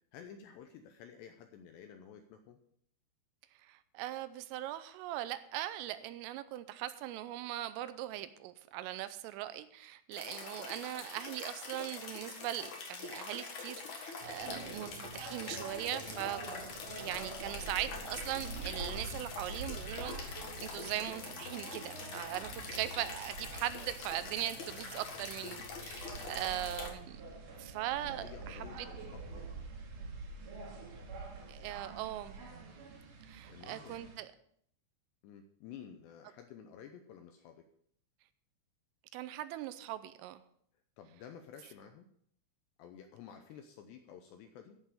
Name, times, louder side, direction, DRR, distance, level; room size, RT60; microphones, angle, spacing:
voice 1, 0.1-2.6 28.0-29.5 33.5-34.0 35.2-37.7 41.0-42.1 42.8-44.8, left 8 dB, 80° left, 2.5 m, -52 dB
voice 2, 3.6-16.4 17.0-27.2 27.6-28.9 31.5-32.5 33.3-34.3 39.1-40.4, right 14 dB, 90° right, 3.2 m, -40 dB
sound 1, 10.1-26.9, left 5 dB, 55° left, 2.2 m, -45 dB
sound 2, 14.2-34.2, right 3 dB, 55° right, 2.6 m, -46 dB
14.0 x 5.6 x 6.6 m
omnidirectional pair, 5.8 m